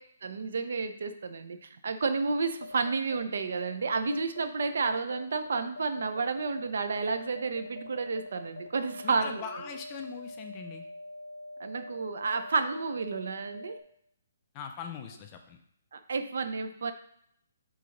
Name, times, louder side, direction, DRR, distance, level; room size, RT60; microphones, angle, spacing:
voice 1, 0.2-9.4 11.6-13.8 15.9-16.9, right 4 dB, 55° right, 9 dB, 0.6 m, -31 dB
sound 1, 2.1-13.8, left 2 dB, 75° left, 0.8 m, -44 dB
voice 2, 9.0-10.8 14.5-15.6, left 7 dB, 15° left, 5 dB, 0.4 m, -41 dB
6.6 x 2.9 x 5.1 m, 0.67 s
hypercardioid pair, 180°, 0 cm